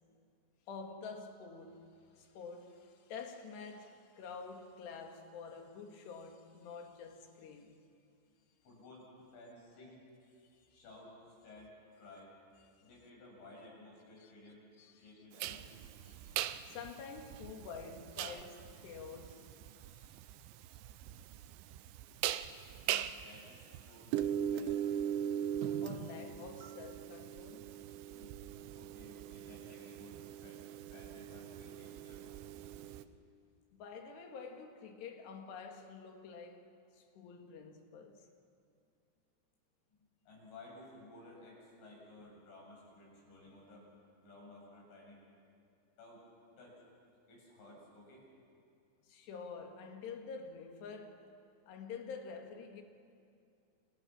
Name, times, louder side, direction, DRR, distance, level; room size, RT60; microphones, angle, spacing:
voice 1, 0.7-7.8 10.4-10.8 14.2-14.3 14.8-15.1 16.1-16.4 16.7-19.5 19.9-20.1 25.6-27.7 33.7-38.3 49.1-51.3 51.7-52.8, left 5 dB, 65° left, 4.1 m, -48 dB
voice 2, 8.6-10.0 10.7-12.3 12.8-14.6 14.9-15.8 22.8-25.0 28.1-28.4 28.8-30.6 30.9-32.8 40.3-43.9 44.2-45.2 46.0-46.2 46.5-46.8 47.3-48.3, left 2 dB, 90° left, 9.9 m, -56 dB
sound 1, 15.4-33.0, right 10 dB, 80° right, 3.0 m, -40 dB
30.0 x 28.0 x 6.3 m
omnidirectional pair, 5.3 m